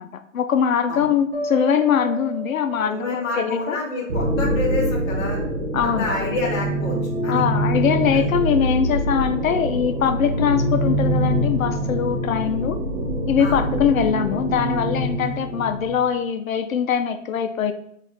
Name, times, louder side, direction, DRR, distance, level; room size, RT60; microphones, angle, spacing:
voice 1, 0.0-3.8 5.7-6.1 7.3-12.8 13.3-17.7, left 8 dB, 85° left, 9 dB, 0.5 m, -22 dB
sound 1, 1.3-4.4, right 1 dB, 15° right, 0.4 m, -33 dB
voice 2, 2.9-5.4 5.8-7.0 7.2-7.4 8.1-8.3 13.4-13.5, left 2 dB, 20° left, -4 dB, 1.0 m, -28 dB
sound 2, 4.1-16.1, right 1 dB, 50° right, 1.2 m, -24 dB
6.1 x 2.5 x 3.3 m, 0.69 s
hypercardioid pair, 155°, 40 cm